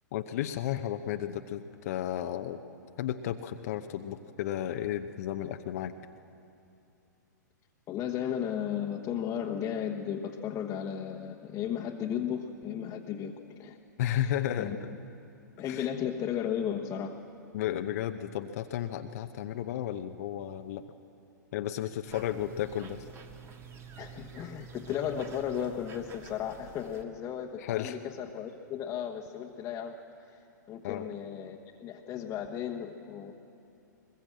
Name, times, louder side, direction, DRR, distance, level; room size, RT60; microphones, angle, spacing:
voice 1, 0.1-2.6 3.0-5.9 14.0-14.7 15.7-15.9 17.5-20.8 21.5-23.0 27.6-28.0 30.8-31.1, left 11 dB, 50° left, 7 dB, 0.8 m, -33 dB
voice 2, 7.9-13.3 13.6-13.8 14.1-14.8 15.6-17.2 24.0-30.0 30.3-30.4 30.7-33.3, left 9 dB, 30° left, 1 dB, 1.3 m, -35 dB
sound 1, 22.0-27.0, right 5 dB, 25° right, 1.7 m, -49 dB
22.0 x 21.5 x 7.6 m, 2.7 s
figure-of-eight pair, 110°, 10 cm